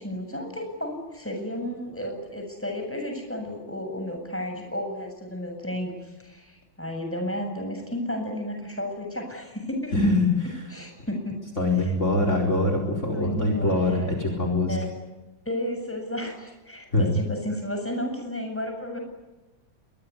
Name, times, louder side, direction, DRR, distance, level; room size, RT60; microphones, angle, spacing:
voice 1, 0.0-5.9 6.2-9.9 10.7-11.4 11.8-11.9 13.1-14.3 14.7-14.9 15.5-19.0, left 1 dB, 5° left, 4 dB, 7.5 m, -32 dB
voice 2, 9.9-10.6 11.6-14.8 16.9-17.1, left 2 dB, 35° left, 4 dB, 4.8 m, -23 dB
26.5 x 22.5 x 9.9 m, 1.1 s
omnidirectional pair, 2.1 m